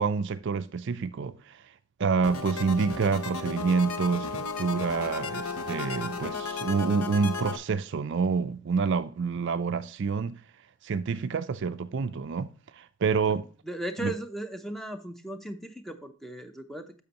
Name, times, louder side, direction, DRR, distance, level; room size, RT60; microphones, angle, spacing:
voice 1, 0.0-1.6 2.0-10.4 10.8-13.5 14.0-14.1, right 5 dB, 55° right, 0.4 m, -28 dB
sound 1, 2.2-7.6, left 4 dB, 80° left, 0.8 m, -34 dB
voice 2, 13.6-17.0, right 1 dB, ahead, 0.5 m, -37 dB
10.5 x 6.9 x 2.9 m
head